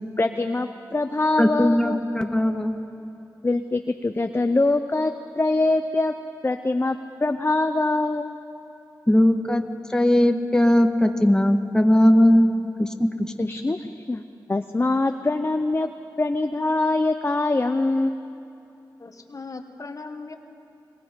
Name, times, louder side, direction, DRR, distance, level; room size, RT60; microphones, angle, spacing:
voice 1, 0.2-2.0 3.4-6.1 6.4-8.4 13.4-14.2 14.5-15.9 16.2-18.2, left 2 dB, 30° left, 7 dB, 0.7 m, -23 dB
voice 2, 1.4-2.8 9.1-12.5 12.8-13.5, left 1 dB, 10° left, 4 dB, 1.5 m, -19 dB
voice 3, 19.0-20.4, left 3 dB, 50° left, 6 dB, 1.5 m, -38 dB
26.0 x 22.0 x 5.3 m, 2.7 s
cardioid pair, 60°, 8 cm